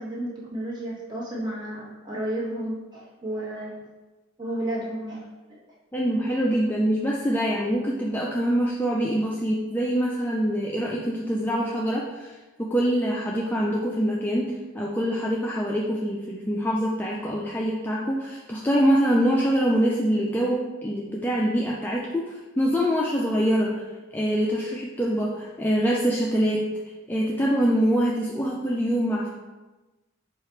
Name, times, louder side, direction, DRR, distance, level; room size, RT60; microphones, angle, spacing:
voice 1, 0.0-3.7 4.4-5.2 5.5-5.6, right 1 dB, 20° right, -6 dB, 1.3 m, -32 dB
voice 2, 5.9-23.8 24.1-26.7 27.1-29.3, equal, 10° left, -3 dB, 0.3 m, -24 dB
4.7 x 2.4 x 4.4 m, 1.1 s
head